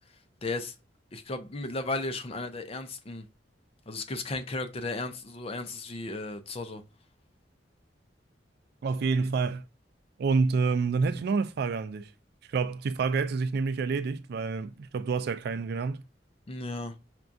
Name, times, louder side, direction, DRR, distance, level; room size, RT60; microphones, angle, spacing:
voice 1, 0.4-0.7 1.1-3.2 3.9-6.8 16.5-16.9, left 2 dB, 35° left, 0.5 m, -35 dB
voice 2, 8.8-9.6 10.2-12.1 12.5-16.0, right 4 dB, 60° right, 0.3 m, -28 dB
5.8 x 2.3 x 2.6 m
head